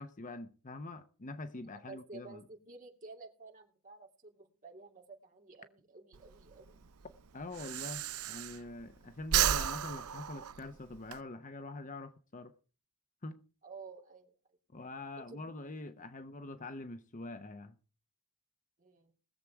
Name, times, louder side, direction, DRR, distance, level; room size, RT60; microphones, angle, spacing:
voice 1, 0.0-2.4 7.3-12.5 13.2-13.4 14.7-17.7, left 2 dB, 35° left, 0.9 m, -44 dB
voice 2, 1.9-6.9 13.6-14.3 15.2-15.4 18.8-19.1, right 4 dB, 40° right, 2.9 m, -52 dB
Breathing, 6.1-8.9 9.2-11.2, right 10 dB, 80° right, 0.6 m, -33 dB
20.0 x 7.5 x 4.7 m
head